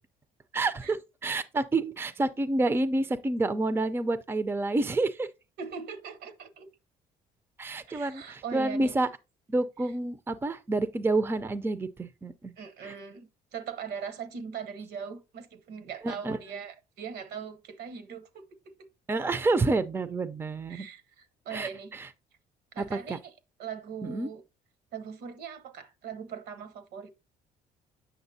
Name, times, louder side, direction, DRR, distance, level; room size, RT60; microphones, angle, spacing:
voice 1, 0.5-5.3 7.6-9.1 9.5-12.5 12.8-13.0 16.0-16.4 19.1-20.9 21.5-22.1 22.8-23.2 24.0-24.3, right 2 dB, 15° right, 0.4 m, -29 dB
voice 2, 5.6-6.7 7.9-8.9 12.6-18.4 20.7-21.9 22.7-23.3 23.6-24.4 24.9-27.1, right 7 dB, 75° right, 1.0 m, -40 dB
8.0 x 5.9 x 2.7 m
cardioid pair, 110°, 17 cm